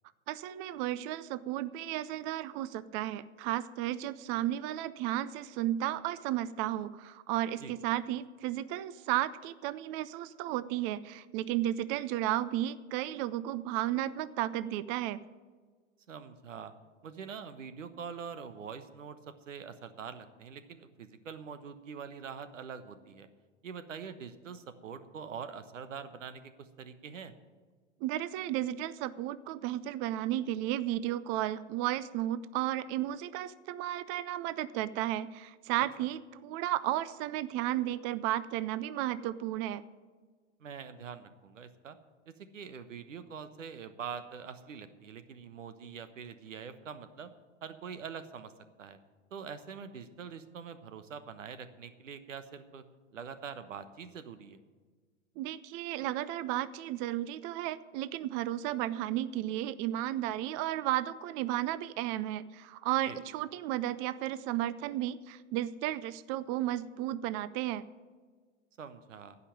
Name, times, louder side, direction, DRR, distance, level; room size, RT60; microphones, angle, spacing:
voice 1, 0.3-15.2 28.0-39.8 55.4-67.8, right 13 dB, 35° right, 17 dB, 0.4 m, -33 dB
voice 2, 16.1-16.7 17.0-23.3 23.6-27.3 36.0-36.1 40.6-42.0 42.3-47.3 47.6-48.5 48.8-49.0 49.3-52.8 53.1-54.6 63.1-63.2 68.8-69.4, right 6 dB, 90° right, 11 dB, 1.1 m, -44 dB
15.5 x 5.6 x 9.1 m, 1.5 s
hypercardioid pair, 115°, 37 cm